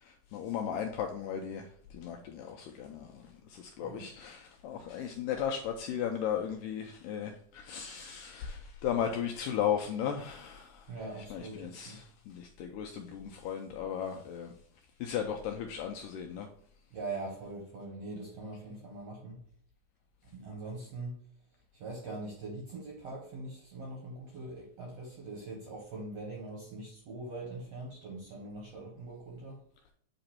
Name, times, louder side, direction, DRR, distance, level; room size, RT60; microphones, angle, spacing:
voice 1, 0.0-10.9 11.3-14.5 15.0-16.5, left 8 dB, 85° left, 1.9 m, -36 dB
voice 2, 10.9-12.0 16.9-19.4 20.3-21.2 21.7-29.6, right 2 dB, 65° right, 1.7 m, -42 dB
7.7 x 2.9 x 4.2 m
omnidirectional pair, 4.3 m